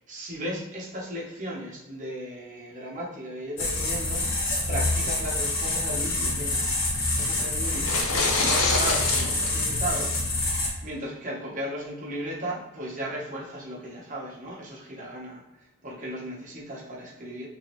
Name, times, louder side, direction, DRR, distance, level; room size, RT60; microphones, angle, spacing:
voice 1, 0.1-6.7 7.0-8.0 8.4-15.4 15.8-17.5, right 1 dB, 40° right, -4 dB, 1.0 m, -36 dB
sound 1, 3.6-10.7, left 2 dB, 65° left, 1.0 m, -27 dB
sound 2, 7.7-9.5, left 3 dB, 80° left, 0.6 m, -26 dB
3.5 x 3.1 x 3.1 m, 1.0 s
head